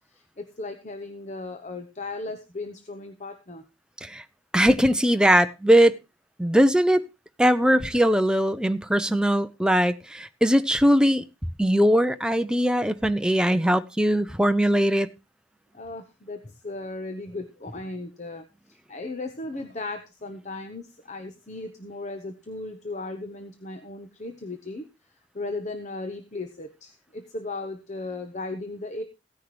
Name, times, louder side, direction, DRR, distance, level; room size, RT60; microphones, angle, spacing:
voice 1, 0.1-3.6 15.7-18.4 18.9-24.8 25.3-29.0, left 2 dB, 35° left, 0.9 m, -36 dB
voice 2, 4.5-5.9 6.4-7.0 7.4-11.2 11.6-15.1, equal, 5° right, 0.5 m, -20 dB
15.5 x 9.8 x 3.1 m
head